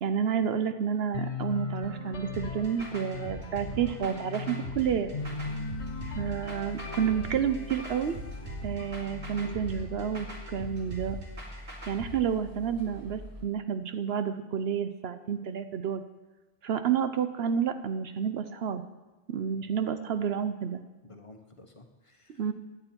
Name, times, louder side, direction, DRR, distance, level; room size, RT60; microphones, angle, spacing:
voice 1, 0.0-5.1 6.1-8.2 8.6-11.2 11.9-16.0 16.6-18.8 19.3-20.8 22.4-22.5, right 8 dB, 65° right, 10 dB, 0.9 m, -30 dB
sound 1, 1.1-11.0, left 4 dB, 75° left, 1.4 m, -39 dB
sound 2, 2.3-12.1, right 1 dB, 85° right, 2.7 m, -42 dB
sound 3, 5.2-13.4, left 1 dB, 20° right, 1.8 m, -45 dB
voice 2, 10.5-10.9 19.5-19.8 21.0-22.4, left 3 dB, 30° left, 4 dB, 1.1 m, -52 dB
16.5 x 10.0 x 4.4 m, 1.2 s
omnidirectional pair, 1.1 m